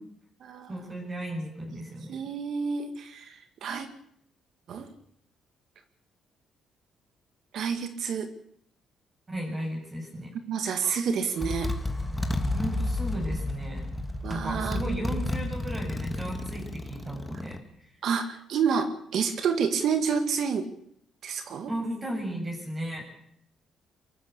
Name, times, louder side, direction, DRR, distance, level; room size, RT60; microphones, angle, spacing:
voice 1, 0.7-2.2 9.3-10.3 12.5-13.9 14.3-18.0 21.7-23.0, right 1 dB, 25° right, 1 dB, 7.8 m, -35 dB
voice 2, 2.1-3.9 4.7-4.9 7.5-8.3 10.5-11.7 14.2-15.0 18.0-20.7 21.2-21.7, right 6 dB, 70° right, 8 dB, 2.1 m, -29 dB
Motorcycle, 10.8-11.0 11.4-17.6, left 2 dB, 10° left, 2.3 m, -31 dB
23.5 x 14.0 x 8.3 m, 0.72 s
cardioid pair, 90°, 0 cm